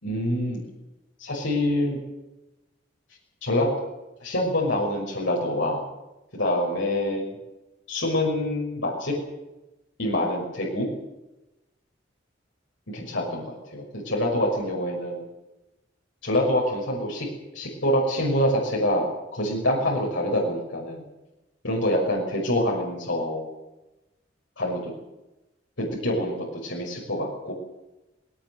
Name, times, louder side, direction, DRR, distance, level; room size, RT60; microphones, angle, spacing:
voice 1, 0.0-0.6 1.2-2.0 3.4-3.7 4.2-5.8 6.3-7.4 7.9-9.1 10.0-10.9 12.9-15.2 16.2-17.3 17.5-21.0 21.6-23.5 24.6-24.9 25.8-27.5, left 1 dB, 90° left, -2 dB, 6.1 m, -26 dB
20.5 x 19.0 x 7.9 m, 1.0 s
head